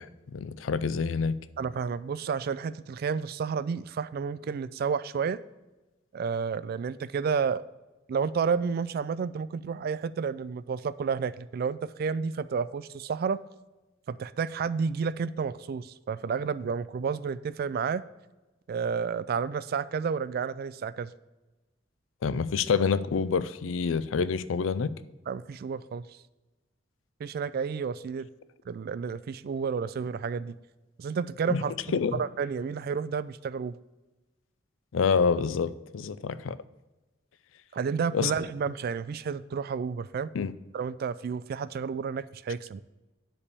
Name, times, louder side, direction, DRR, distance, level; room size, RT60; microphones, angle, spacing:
voice 1, 0.0-1.4 22.2-24.9 31.5-31.6 31.9-32.2 34.9-36.6 38.1-38.3 40.3-40.5, left 5 dB, 90° left, 16 dB, 0.4 m, -27 dB
voice 2, 1.6-5.4 6.1-7.6 8.1-13.4 14.1-18.0 18.7-21.1 25.3-26.1 27.2-28.3 28.7-30.5 31.0-31.7 32.1-33.8 37.7-40.3 40.7-42.8, right 6 dB, 50° right, 16 dB, 0.3 m, -31 dB
9.7 x 3.4 x 6.8 m, 1.1 s
head